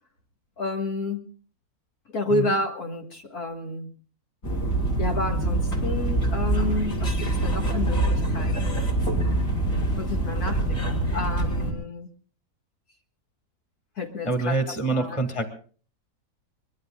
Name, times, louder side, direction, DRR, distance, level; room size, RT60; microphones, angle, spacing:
voice 1, 0.6-1.2 2.1-3.9 5.0-8.9 10.0-12.1 14.0-15.2, left 2 dB, 80° left, 2 dB, 2.3 m, -30 dB
sound 1, 4.4-11.7, right 2 dB, 60° left, 4.0 m, -25 dB
voice 2, 14.2-15.5, right 2 dB, 20° left, 5 dB, 1.9 m, -26 dB
24.0 x 21.5 x 2.4 m, 0.42 s
omnidirectional pair, 1.6 m